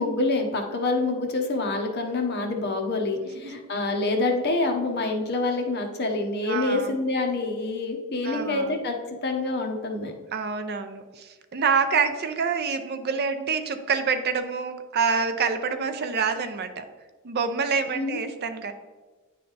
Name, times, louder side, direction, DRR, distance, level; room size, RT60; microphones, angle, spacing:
voice 1, 0.0-10.1 17.9-18.2, left 2 dB, 50° left, 3 dB, 0.9 m, -26 dB
voice 2, 6.5-7.0 8.2-8.7 10.3-16.8 17.2-18.7, right 5 dB, 50° right, 9 dB, 0.5 m, -27 dB
9.6 x 3.4 x 3.9 m, 1.3 s
head